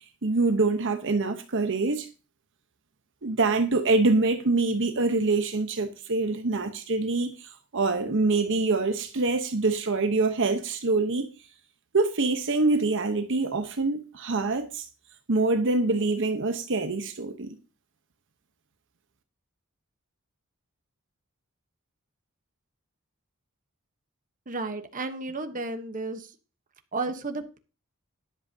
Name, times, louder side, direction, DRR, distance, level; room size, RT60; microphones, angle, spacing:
voice 1, 0.2-2.1 3.2-11.3 11.9-14.9 15.3-17.6, right 3 dB, 60° right, 1.0 m, -25 dB
voice 2, 24.5-26.3 26.9-27.6, right 3 dB, 40° right, 1.1 m, -32 dB
12.5 x 11.0 x 2.8 m
head